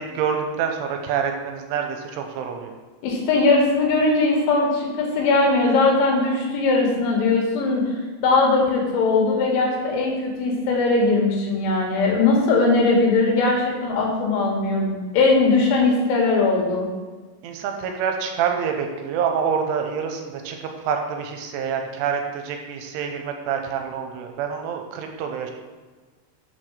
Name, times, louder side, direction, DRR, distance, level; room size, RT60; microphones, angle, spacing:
voice 1, 0.1-2.7 17.4-20.6 20.8-25.5, right 7 dB, 80° right, 4 dB, 3.1 m, -26 dB
voice 2, 3.0-7.9 8.2-16.9, left 3 dB, 75° left, -1 dB, 3.7 m, -20 dB
7.5 x 4.6 x 6.3 m, 1.4 s
omnidirectional pair, 5.7 m